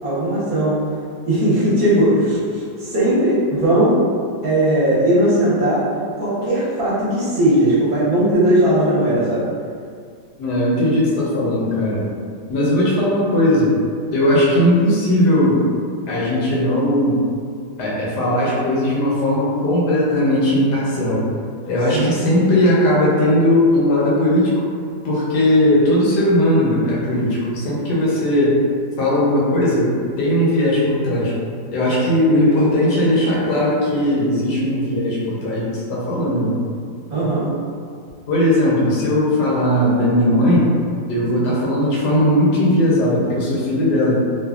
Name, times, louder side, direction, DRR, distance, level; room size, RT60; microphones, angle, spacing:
voice 1, 0.0-0.8 1.2-4.0 4.4-5.8 6.2-9.4 21.9-22.1 37.1-37.4, right 1 dB, 60° right, -10 dB, 1.1 m, -18 dB
voice 2, 10.4-12.0 12.5-13.7 14.1-15.6 16.1-17.2 17.8-21.2 21.7-24.5 25.0-28.6 29.0-31.3 31.7-36.6 38.3-40.7 41.1-44.2, left 1 dB, 70° left, -6 dB, 1.2 m, -18 dB
3.2 x 2.2 x 2.3 m, 2.2 s
omnidirectional pair, 1.9 m